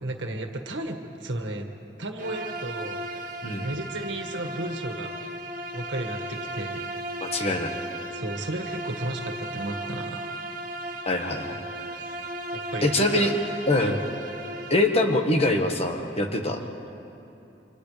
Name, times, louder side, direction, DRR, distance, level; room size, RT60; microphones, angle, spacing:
voice 1, 0.0-1.7 2.0-3.1 3.6-5.1 5.7-6.8 8.1-10.2 12.5-13.3 13.8-14.0 16.6-16.7, right 1 dB, 90° right, 4 dB, 1.8 m, -33 dB
Bowed string instrument, 2.2-15.0, right 1 dB, 45° right, 1.4 m, -36 dB
voice 2, 7.2-7.7 11.0-11.6 12.8-13.3 13.7-14.0 14.7-16.6, left 1 dB, 35° left, 3 dB, 1.5 m, -24 dB
29.0 x 26.5 x 3.4 m, 2.9 s
head